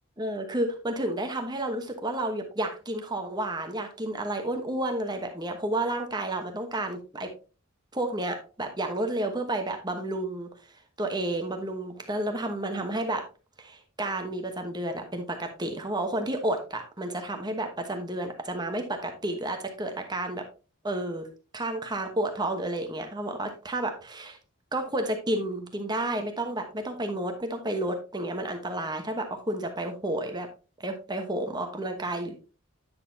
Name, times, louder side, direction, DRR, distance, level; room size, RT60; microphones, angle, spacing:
voice 1, 0.2-7.3 7.9-13.2 13.6-20.4 20.8-21.3 21.5-24.4 24.7-30.5 30.8-32.3, right 1 dB, 20° right, 5 dB, 1.1 m, -31 dB
9.7 x 6.6 x 2.8 m, 0.33 s
head